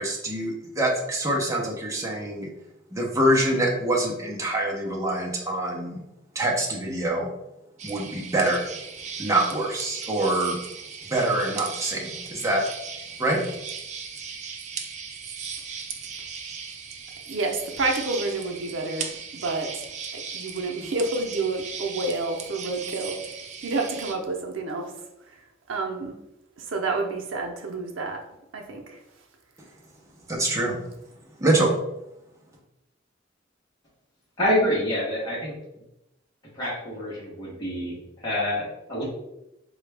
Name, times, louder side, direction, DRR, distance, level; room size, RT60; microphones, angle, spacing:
voice 1, 0.0-2.5 2.9-6.0 6.3-7.3 7.8-8.7 9.2-10.6 11.1-12.6 13.2-13.4 30.3-30.8 31.4-31.7, right 1 dB, 15° right, -3 dB, 0.7 m, -25 dB
sound 1, 7.8-24.1, right 6 dB, 40° right, 0.4 m, -37 dB
voice 2, 17.3-19.8 20.1-24.9 25.3-25.4 25.7-26.1 26.6-28.2 28.5-29.0, right 3 dB, 85° right, 2 dB, 0.6 m, -29 dB
voice 3, 34.4-35.5 36.5-39.0, left 1 dB, 20° left, -9 dB, 1.1 m, -27 dB
3.9 x 2.3 x 3.3 m, 0.88 s
head